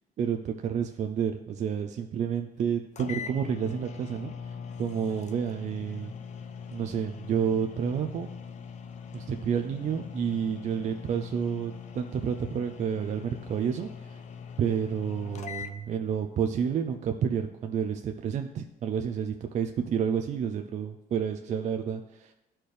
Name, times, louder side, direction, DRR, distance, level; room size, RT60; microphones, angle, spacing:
voice 1, 0.2-6.1 6.7-8.3 9.1-14.2 14.6-22.3, right 7 dB, 45° right, 6 dB, 0.5 m, -30 dB
sound 1, 2.6-2.7 3.0-15.8, left 6 dB, 45° left, 0.6 m, -41 dB
11.5 x 4.4 x 3.3 m, 0.93 s
cardioid pair, 110°, 17 cm